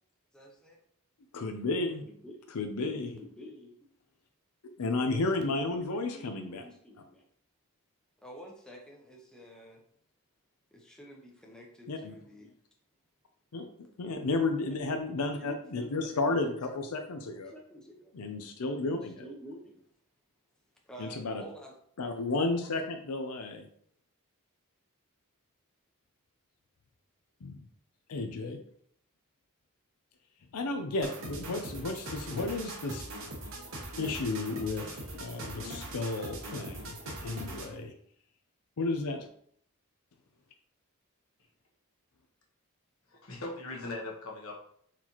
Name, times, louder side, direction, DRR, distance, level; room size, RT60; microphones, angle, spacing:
voice 1, 0.3-0.8 2.0-2.5 3.1-3.7 5.4-7.2 8.2-9.8 10.7-12.5 14.1-14.2 14.7-17.0 17.3-18.1 18.8-19.8 20.8-21.7, equal, 5° left, -1 dB, 0.7 m, -49 dB
voice 2, 1.3-2.0 2.5-3.2 4.8-6.6 11.9-12.1 13.5-17.5 18.1-19.2 21.0-21.4 22.0-23.7 27.4-27.6 28.1-28.6 30.5-33.0 34.0-37.9 38.8-39.3, left 3 dB, 90° left, 5 dB, 0.6 m, -33 dB
sound 1, 31.0-37.8, right 1 dB, 60° right, 1.0 m, -41 dB
voice 3, 43.1-44.6, left 2 dB, 65° left, 0 dB, 1.2 m, -39 dB
4.4 x 4.0 x 3.0 m, 0.63 s
head